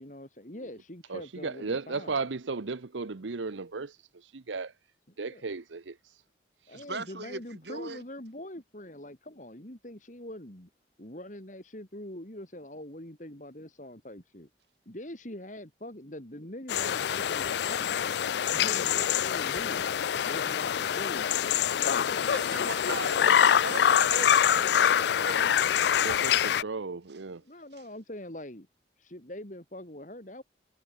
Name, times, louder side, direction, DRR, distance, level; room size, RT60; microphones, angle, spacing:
voice 1, 0.0-2.2 5.3-5.4 6.7-10.7 11.0-14.5 14.8-17.9 18.5-19.9 20.3-21.5 22.5-22.7 23.0-23.3 27.4-28.7 29.0-30.4, left 1 dB, 40° left, 3.2 m, -43 dB
voice 2, 1.1-4.7 5.2-6.2 6.7-6.8 25.2-25.5 26.0-27.4, right 4 dB, 85° right, 0.8 m, -36 dB
voice 3, 6.7-8.0 22.1-25.7, right 3 dB, 70° right, 7.9 m, -39 dB
sound 1, 16.7-26.6, left 9 dB, 65° left, 0.4 m, -25 dB
head